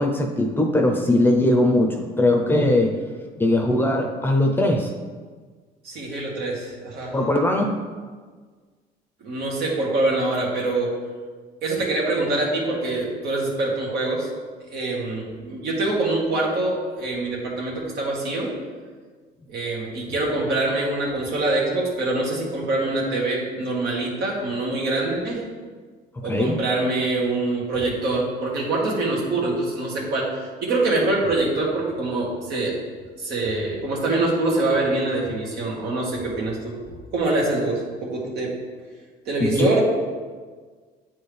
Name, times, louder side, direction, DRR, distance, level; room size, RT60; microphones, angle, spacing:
voice 1, 0.0-3.0 3.4-4.9 7.1-7.8 26.2-26.6 39.4-39.7, left 1 dB, 15° left, 2 dB, 0.7 m, -20 dB
voice 2, 5.8-7.2 9.2-10.9 11.6-14.3 14.7-18.5 19.5-25.5 26.2-32.8 33.2-36.7 37.1-38.5 39.3-39.8, right 2 dB, 75° right, -3 dB, 1.8 m, -24 dB
9.0 x 4.4 x 3.4 m, 1.5 s
cardioid pair, 110°, 17 cm